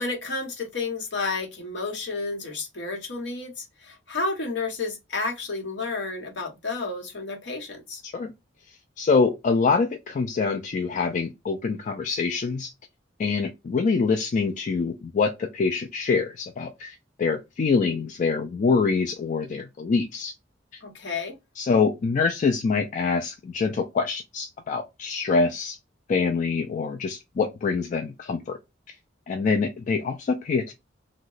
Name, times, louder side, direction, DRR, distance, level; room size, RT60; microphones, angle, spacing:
voice 1, 0.0-8.0 20.8-21.4, left 3 dB, 65° left, 1.0 m, -31 dB
voice 2, 9.0-12.7 13.2-20.3 21.6-25.8 26.1-28.6 29.3-30.7, left 4 dB, 40° left, 0.3 m, -25 dB
2.8 x 2.1 x 3.8 m
head